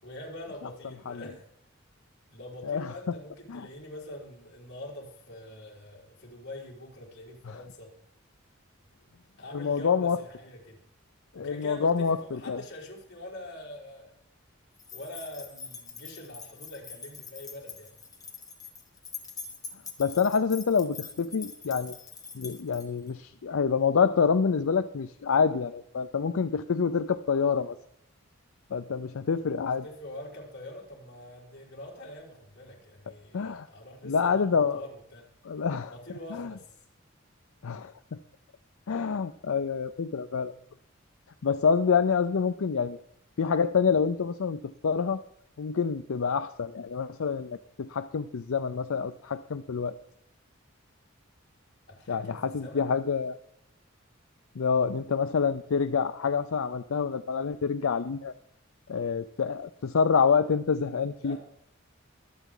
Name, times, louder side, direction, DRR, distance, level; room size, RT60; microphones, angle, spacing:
voice 1, 0.0-1.4 2.3-7.9 9.4-10.8 11.3-14.1 14.9-17.9 29.6-35.3 35.9-36.6 51.9-52.9 61.2-61.4, left 1 dB, 55° left, -3 dB, 4.6 m, -44 dB
voice 2, 9.5-10.2 11.4-12.6 20.0-21.9 22.3-27.8 28.7-29.8 33.3-33.7 34.0-34.8 35.5-35.9 36.4-36.5 37.6-37.9 38.9-40.5 41.4-43.0 43.4-45.2 45.6-50.0 52.1-53.4 54.6-58.3 58.9-61.4, left 6 dB, 75° left, 10 dB, 0.5 m, -27 dB
sound 1, 14.8-23.1, left 5 dB, 15° left, 1.5 m, -44 dB
24.0 x 8.2 x 3.8 m, 0.78 s
head